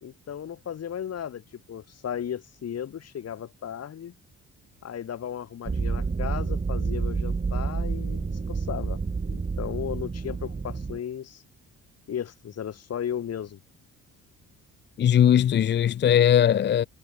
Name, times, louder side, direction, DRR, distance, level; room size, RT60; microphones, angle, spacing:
voice 1, 0.0-4.1 4.8-9.0 9.3-11.4 12.1-13.6, left 9 dB, 55° left, 2.6 m, -35 dB
sound 1, 5.6-11.0, right 4 dB, 25° right, 2.2 m, -29 dB
voice 2, 15.0-16.8, left 10 dB, 40° left, 0.4 m, -19 dB
cardioid pair, 90°, 30 cm